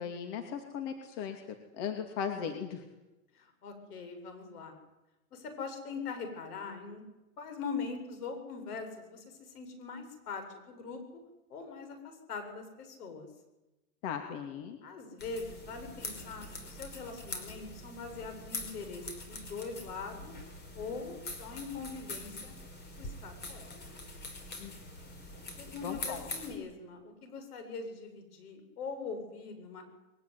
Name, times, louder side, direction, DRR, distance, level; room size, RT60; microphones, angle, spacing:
voice 1, 0.0-1.4 1.7-2.8 14.0-14.8 24.6-24.8 25.8-26.2, left 7 dB, 50° left, 5 dB, 2.9 m, -37 dB
voice 2, 3.3-4.8 5.3-7.0 7.4-11.0 11.5-13.3 14.8-20.3 20.7-22.6 23.0-23.7 25.6-29.8, left 4 dB, 80° left, 6 dB, 7.7 m, -42 dB
sound 1, 15.2-26.5, left 2 dB, 20° left, 5.1 m, -44 dB
22.5 x 21.5 x 9.6 m, 1.0 s
hypercardioid pair, 135°, 45 cm